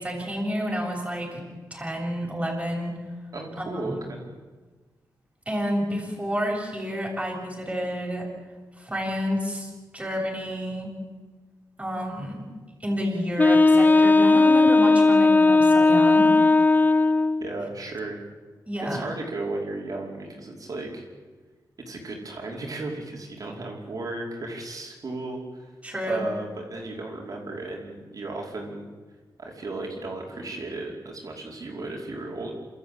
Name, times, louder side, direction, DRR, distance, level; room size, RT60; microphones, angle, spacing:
voice 1, 0.0-1.4 1.7-3.0 3.6-3.9 5.5-8.3 8.8-10.9 11.8-12.4 12.8-16.3 18.7-19.1 25.8-26.3, equal, 15° right, -1 dB, 7.4 m, -29 dB
voice 2, 3.3-4.2 17.4-18.2 18.8-21.0 21.9-25.7 26.1-28.9 29.4-32.5, right 2 dB, 55° right, 0 dB, 5.3 m, -35 dB
Wind instrument woodwind instrument, 13.4-17.5, left 3 dB, 25° left, 0.7 m, -17 dB
29.0 x 13.5 x 9.1 m, 1.3 s
cardioid pair, 85°, 7 cm